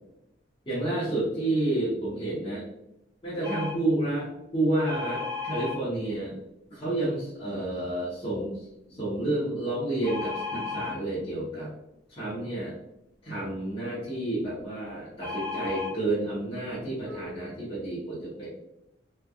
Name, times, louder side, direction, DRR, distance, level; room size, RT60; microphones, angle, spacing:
voice 1, 0.7-2.6 3.2-6.4 6.7-11.7 12.1-12.7 13.2-18.5, right 1 dB, 30° left, -10 dB, 0.8 m, -30 dB
sound 1, 3.4-3.7 4.9-5.7 10.0-10.9 15.2-15.9 16.7-16.8 17.1-17.3, left 4 dB, 10° left, 1.1 m, -34 dB
3.2 x 2.3 x 2.3 m, 0.87 s
head